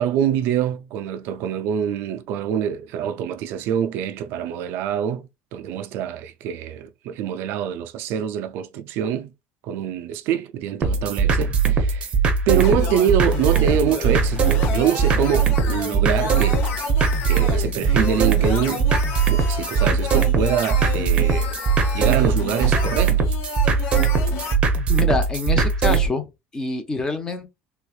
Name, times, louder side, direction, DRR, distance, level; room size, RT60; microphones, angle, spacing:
voice 1, 0.0-9.3 9.6-12.1 12.5-16.6 17.3-18.9 19.3-21.5 21.9-23.4, right 9 dB, 60° right, 0.4 m, -25 dB
sound 1, 10.8-26.1, right 5 dB, 25° right, 0.7 m, -20 dB
sound 2, 12.6-24.6, left 5 dB, 60° left, 0.9 m, -32 dB
voice 2, 24.9-26.3 26.5-27.5, left 4 dB, 15° left, 0.7 m, -25 dB
3.4 x 3.1 x 2.3 m
cardioid pair, 170°, 4 cm